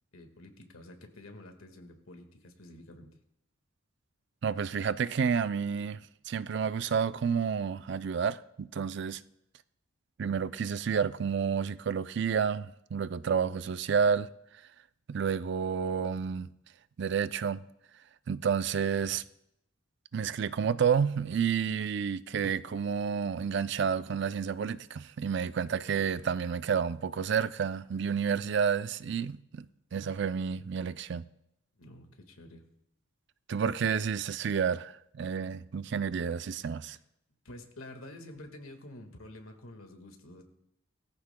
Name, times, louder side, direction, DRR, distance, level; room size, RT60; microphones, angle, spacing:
voice 1, 0.1-3.1 19.0-19.1 31.8-32.6 37.5-40.4, left 1 dB, 90° left, 1.7 m, -49 dB
voice 2, 4.4-9.2 10.2-14.3 15.1-16.5 17.0-17.6 18.3-19.2 20.1-29.7 29.9-31.3 33.5-37.0, right 6 dB, 55° right, 0.4 m, -30 dB
20.5 x 14.0 x 2.2 m
head